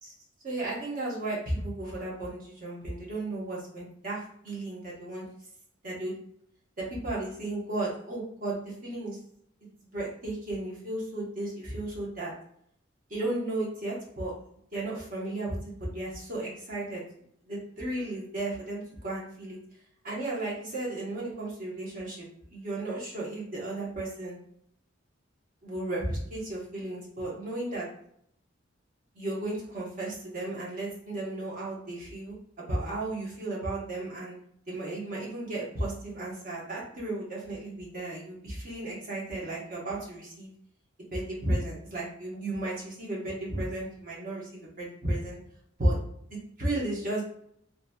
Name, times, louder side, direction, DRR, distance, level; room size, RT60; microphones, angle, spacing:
voice 1, 0.4-5.2 5.8-6.1 6.8-9.2 9.9-12.3 13.1-14.3 14.7-17.0 17.5-19.6 20.0-24.4 25.6-27.9 29.1-34.4 34.7-40.5 41.1-45.4 45.8-46.0 46.3-47.2, right 2 dB, 45° right, -4 dB, 1.0 m, -34 dB
2.9 x 2.7 x 2.2 m, 0.68 s
head